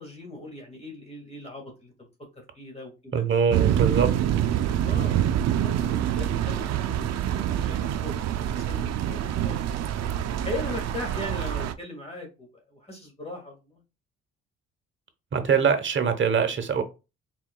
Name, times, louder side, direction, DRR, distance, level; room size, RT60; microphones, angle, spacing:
voice 1, 0.0-1.9 2.4-3.2 4.8-5.3 5.6-7.3 7.6-9.6 10.4-13.8, left 1 dB, 20° left, 1.8 m, -39 dB
voice 2, 3.1-4.1 15.3-16.8, right 6 dB, 40° right, 0.9 m, -23 dB
sound 1, 3.5-11.7, right 10 dB, 60° right, 0.4 m, -26 dB
4.5 x 3.8 x 2.2 m
cardioid pair, 90°, 30 cm